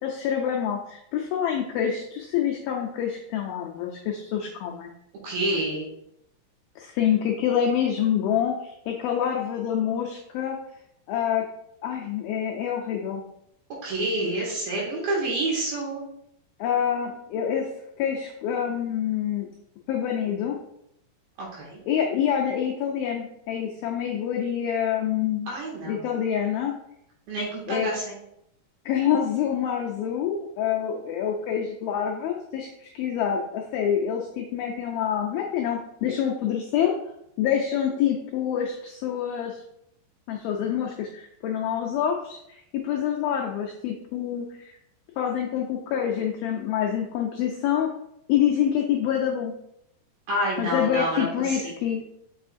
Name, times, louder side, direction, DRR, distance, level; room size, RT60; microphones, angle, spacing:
voice 1, 0.0-4.9 6.8-10.6 11.1-11.4 11.8-13.2 16.6-17.7 18.0-19.5 19.9-20.6 21.9-25.5 25.9-26.7 27.7-27.9 28.9-36.9 37.4-39.6 40.3-44.7 45.2-47.9 48.3-49.5 50.6-52.0, left 9 dB, 90° left, 0 dB, 2.1 m, -26 dB
voice 2, 5.2-5.9 13.8-16.0 21.4-21.8 25.5-26.0 27.3-28.2 50.3-51.6, right 1 dB, 60° right, -4 dB, 3.7 m, -28 dB
6.4 x 6.3 x 2.6 m, 0.76 s
omnidirectional pair, 5.1 m